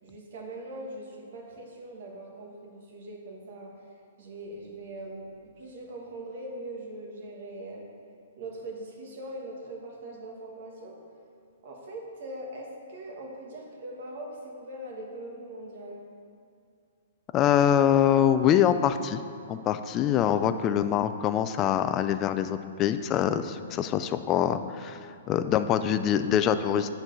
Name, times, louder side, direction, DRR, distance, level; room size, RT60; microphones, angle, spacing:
voice 1, 0.0-3.7 4.2-7.8 8.3-11.0 11.6-16.0, right 1 dB, 50° right, -1 dB, 1.7 m, -41 dB
voice 2, 17.3-19.2 19.5-25.0 25.3-26.9, left 9 dB, 20° left, 10 dB, 0.3 m, -24 dB
9.0 x 4.5 x 5.5 m, 2.4 s
hypercardioid pair, 165°, 0 cm